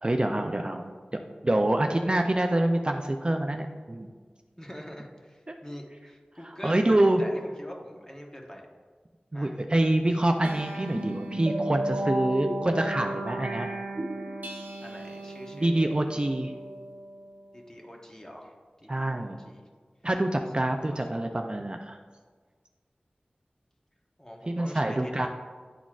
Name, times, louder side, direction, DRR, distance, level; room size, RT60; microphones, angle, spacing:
voice 1, 0.0-0.9 1.4-4.1 5.5-5.6 6.6-7.2 9.3-13.7 15.5-16.5 18.9-19.4 20.0-22.0 24.5-25.3, right 1 dB, 30° right, 4 dB, 0.4 m, -26 dB
voice 2, 4.6-8.7 9.3-9.6 14.8-15.7 17.5-19.7 20.6-21.2 24.2-25.3, equal, 20° left, 0 dB, 1.0 m, -45 dB
sound 1, 10.4-17.3, right 1 dB, 65° right, 0.8 m, -34 dB
9.9 x 4.0 x 2.4 m, 1.5 s
wide cardioid pair, 50°, 3 cm